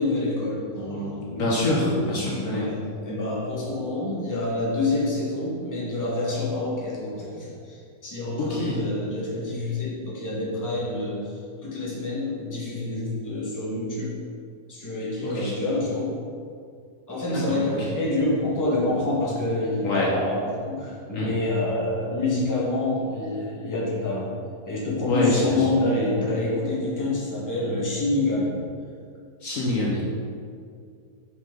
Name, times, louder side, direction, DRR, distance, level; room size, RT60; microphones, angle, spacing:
voice 1, 0.0-11.3 11.6-14.2 14.7-16.1 17.1-24.3 24.6-28.6, left 2 dB, 15° left, -5 dB, 1.1 m, -27 dB
voice 2, 1.4-2.6 8.4-8.8 15.2-15.5 17.3-17.6 19.8-20.1 21.1-21.3 25.1-25.7 29.4-30.1, left 2 dB, 60° left, -4 dB, 1.1 m, -25 dB
6.3 x 5.4 x 3.7 m, 2.3 s
omnidirectional pair, 1.7 m